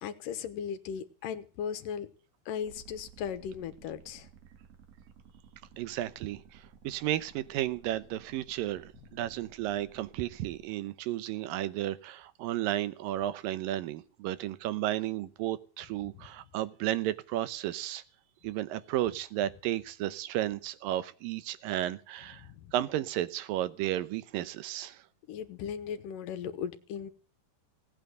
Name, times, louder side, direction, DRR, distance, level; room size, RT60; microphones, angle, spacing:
voice 1, 0.0-2.1 2.5-4.3 16.1-16.3 22.4-22.7 25.3-27.1, left 8 dB, 75° left, 11 dB, 2.7 m, -37 dB
sound 1, 2.6-10.6, right 7 dB, 50° right, 2.7 m, -56 dB
voice 2, 5.8-18.0 18.4-25.0, right 13 dB, 85° right, 15 dB, 2.6 m, -33 dB
17.5 x 9.0 x 7.9 m, 0.39 s
omnidirectional pair, 3.9 m